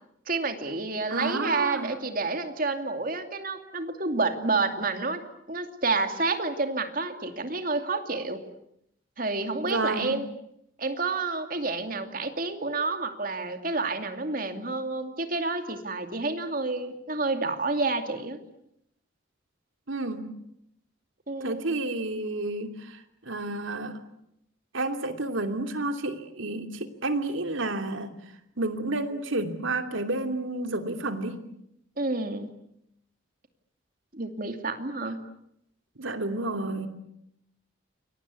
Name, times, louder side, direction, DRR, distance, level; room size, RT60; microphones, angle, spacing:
voice 1, 0.3-5.2 5.5-8.4 9.2-10.3 10.8-18.4 21.3-21.6 32.0-32.5 34.1-35.2, right 3 dB, 45° right, 7 dB, 2.6 m, -29 dB
voice 2, 1.1-1.9 9.6-10.2 19.9-20.2 21.4-24.0 24.7-28.1 28.6-31.3 36.0-36.9, right 2 dB, 75° right, 7 dB, 2.8 m, -30 dB
29.0 x 23.0 x 8.4 m, 0.78 s
head